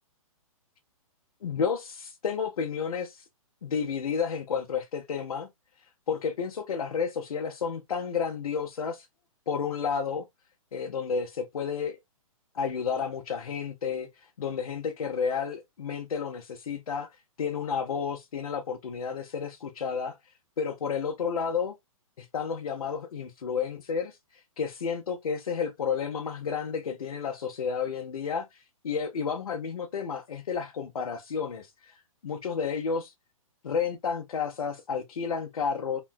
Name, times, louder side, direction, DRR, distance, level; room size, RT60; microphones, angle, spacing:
voice 1, 1.4-3.2 3.6-5.5 6.1-9.1 9.5-10.3 10.7-12.0 12.5-17.1 17.4-20.2 20.6-21.8 22.2-31.9 32.2-33.1 33.6-36.0, left 6 dB, 90° left, 0.7 m, -31 dB
3.0 x 2.2 x 2.4 m
hypercardioid pair, 150°, 18 cm